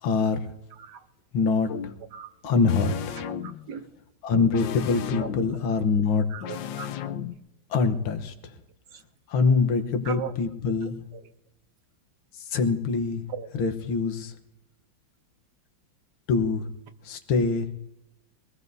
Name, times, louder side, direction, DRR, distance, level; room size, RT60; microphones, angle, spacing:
voice 1, 0.0-0.5 1.3-1.9 2.4-3.0 4.2-6.3 7.7-8.5 9.3-11.0 12.4-13.2 13.5-14.3 16.3-16.7 17.0-17.7, left 4 dB, 90° left, 1.9 m, -24 dB
sound 1, 1.7-2.0 2.7-3.7 4.5-5.6 6.4-7.3, left 9 dB, 75° left, 1.3 m, -35 dB
voice 2, 3.2-3.9 5.2-5.3 6.3-6.9 8.9-9.0 10.1-10.3 13.3-13.5, right 9 dB, 65° right, 1.2 m, -37 dB
23.0 x 17.0 x 2.7 m
omnidirectional pair, 2.2 m